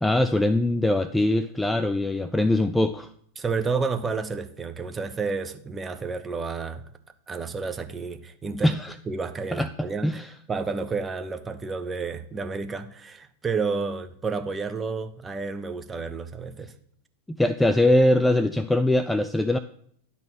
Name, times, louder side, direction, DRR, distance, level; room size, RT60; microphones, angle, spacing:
voice 1, 0.0-3.1 8.6-8.9 9.5-9.7 10.0-10.3 17.3-19.6, left 1 dB, 5° left, 11 dB, 0.3 m, -22 dB
voice 2, 3.4-6.8 7.3-8.7 9.1-16.7, right 4 dB, 15° right, 9 dB, 0.7 m, -30 dB
10.5 x 4.1 x 6.2 m, 0.64 s
figure-of-eight pair, 90°, 0 cm